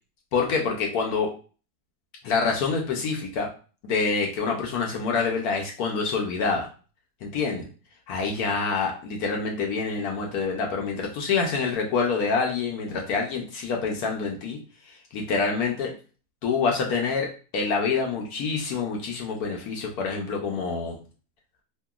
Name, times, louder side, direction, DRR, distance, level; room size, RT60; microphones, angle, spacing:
voice 1, 0.3-1.3 2.2-3.5 3.8-6.7 7.2-7.7 8.1-14.6 14.9-15.9 16.4-20.9, left 4 dB, 75° left, 0 dB, 1.1 m, -26 dB
2.8 x 2.6 x 2.3 m, 0.37 s
omnidirectional pair, 1.6 m